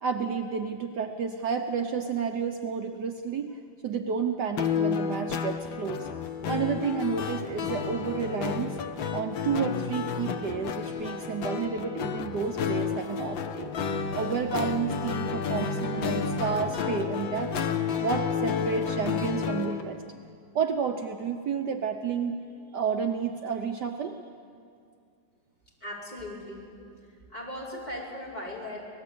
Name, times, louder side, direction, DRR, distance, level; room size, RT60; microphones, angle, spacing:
voice 1, 0.0-6.1 6.5-8.8 9.1-13.7 14.2-17.6 18.0-20.0 20.5-22.4 22.7-24.2, right 6 dB, 65° right, 5 dB, 1.4 m, -31 dB
sound 1, 4.6-19.8, left 6 dB, 75° left, 1.9 m, -31 dB
voice 2, 25.8-26.6 27.3-28.8, left 1 dB, 20° left, -4 dB, 5.2 m, -38 dB
25.5 x 18.5 x 8.6 m, 2.3 s
omnidirectional pair, 2.1 m